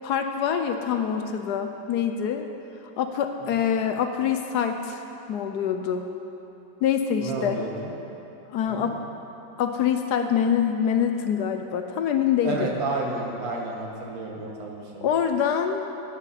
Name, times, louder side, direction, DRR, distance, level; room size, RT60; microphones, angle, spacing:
voice 1, 0.0-2.5 3.0-5.0 5.3-6.1 6.8-7.6 8.5-9.0 9.6-12.7 15.0-15.9, left 8 dB, 75° left, 6 dB, 1.1 m, -25 dB
voice 2, 7.2-7.9 8.7-8.9 12.4-15.0, right 2 dB, 55° right, -1 dB, 1.7 m, -31 dB
12.0 x 10.5 x 4.1 m, 2.9 s
omnidirectional pair, 1.9 m